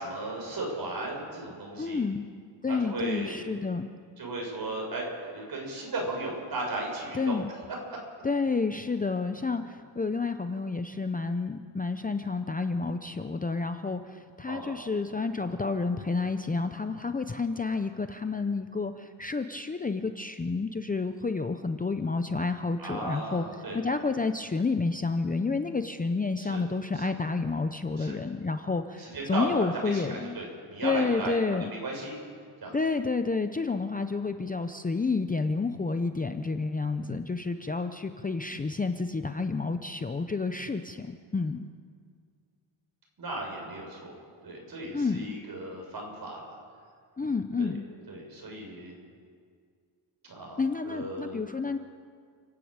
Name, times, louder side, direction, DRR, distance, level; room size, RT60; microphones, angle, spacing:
voice 1, 0.0-2.0 2.7-3.4 4.2-5.1 5.3-7.4 7.9-8.0 14.5-14.8 22.8-23.8 26.4-26.6 26.9-27.1 28.0-28.2 29.0-31.4 31.7-32.2 32.6-32.7 43.2-44.1 44.4-46.6 47.6-47.7 48.1-48.9 50.3-51.4, right 2 dB, 50° right, -1 dB, 6.6 m, -36 dB
voice 2, 1.8-2.3 2.6-3.9 7.1-7.5 8.2-23.5 23.7-30.4 30.8-31.7 32.7-41.7 44.9-45.3 47.2-47.8 50.6-51.8, left 4 dB, 20° left, 8 dB, 0.7 m, -30 dB
29.5 x 10.5 x 8.8 m, 2.1 s
wide cardioid pair, 125°, 48 cm